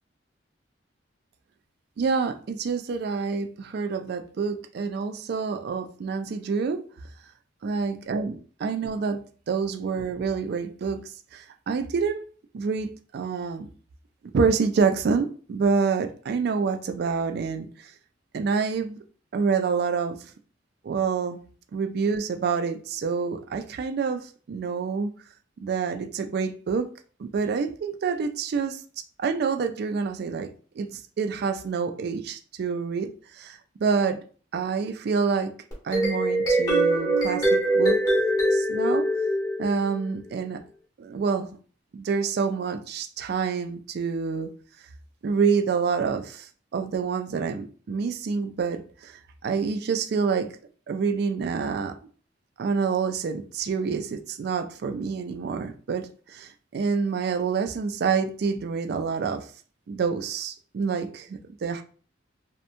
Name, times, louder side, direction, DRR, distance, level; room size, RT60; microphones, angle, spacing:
voice 1, 2.0-6.8 7.6-12.2 12.5-13.7 14.3-17.9 18.3-19.0 19.3-20.2 20.8-21.4 21.7-25.1 25.6-26.9 27.2-28.8 29.2-30.5 30.8-34.2 34.5-35.5 35.8-38.0 38.5-39.1 39.6-40.6 41.0-41.6 41.9-44.5 45.2-50.6 50.9-52.0 52.6-59.5 59.9-61.8, right 5 dB, 55° right, 0.3 m, -27 dB
sound 1, 35.7-40.1, right 1 dB, 20° left, 0.9 m, -23 dB
2.8 x 2.1 x 2.5 m
head